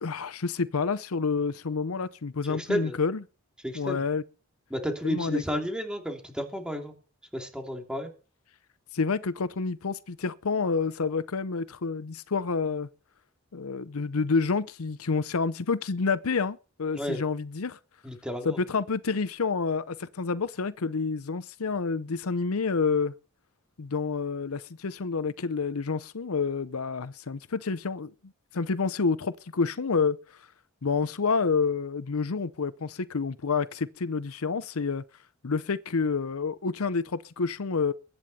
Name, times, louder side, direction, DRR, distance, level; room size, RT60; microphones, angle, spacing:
voice 1, 0.0-3.2 3.7-4.2 5.0-5.4 8.9-12.9 13.5-17.8 18.4-23.1 23.8-28.1 28.5-30.4 30.8-35.0 35.4-37.9, left 4 dB, 75° left, 0.7 m, -28 dB
voice 2, 2.5-2.9 3.6-4.0 4.7-6.9 7.3-8.1 16.9-17.2 18.0-18.6, equal, 5° right, 3.0 m, -32 dB
22.0 x 9.6 x 4.2 m
head